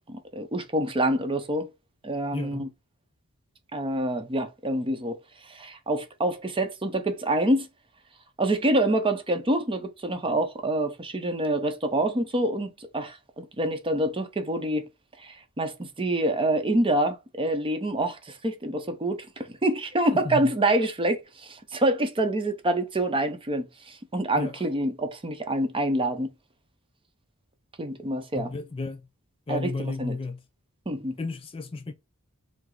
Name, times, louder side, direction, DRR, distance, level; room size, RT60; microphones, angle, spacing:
voice 1, 0.1-1.7 2.0-2.7 3.7-5.2 5.5-7.7 8.4-14.9 15.2-26.3 27.8-28.5 29.5-30.2 30.9-31.2, right 1 dB, 25° right, 0.6 m, -26 dB
voice 2, 2.3-2.7 20.1-20.5 24.3-24.7 28.3-29.1 29.5-30.4 31.2-31.9, left 3 dB, 25° left, 0.3 m, -33 dB
4.8 x 2.0 x 3.8 m
head